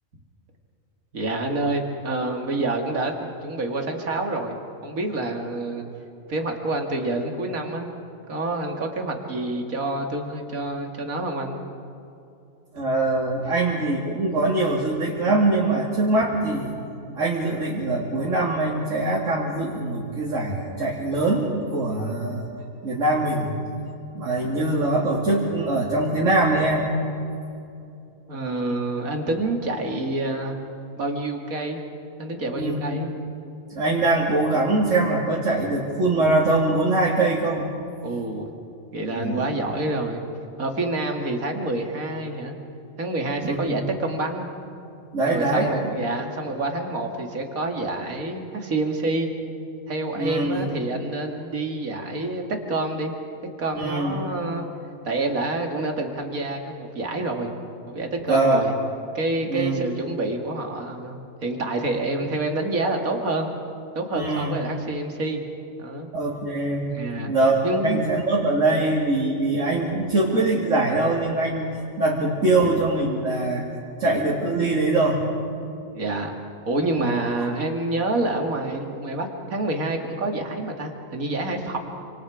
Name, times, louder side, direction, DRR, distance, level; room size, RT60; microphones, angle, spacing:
voice 1, 1.1-4.6 4.8-5.8 6.3-7.9 8.3-11.6 28.3-30.6 31.0-31.8 32.2-33.1 38.0-38.5 38.9-40.2 40.6-42.5 43.0-44.5 45.2-49.3 49.9-53.1 53.6-54.6 55.0-57.5 57.9-58.7 59.1-63.5 63.9-65.4 65.8-66.1 66.9-67.3 67.6-68.0 75.9-76.3 76.7-81.8, right 2 dB, 80° right, 3 dB, 2.7 m, -27 dB
voice 2, 12.7-16.7 17.2-22.5 22.8-23.5 24.1-26.9 32.5-33.0 33.7-37.7 39.1-39.5 43.4-43.8 45.1-45.7 50.2-50.7 53.7-54.2 58.3-58.6 59.5-59.8 64.1-64.5 66.1-66.9 67.3-73.7 74.0-75.2 77.0-77.2, right 2 dB, 65° right, -5 dB, 2.9 m, -23 dB
28.0 x 26.5 x 5.0 m, 2.6 s
omnidirectional pair, 1.4 m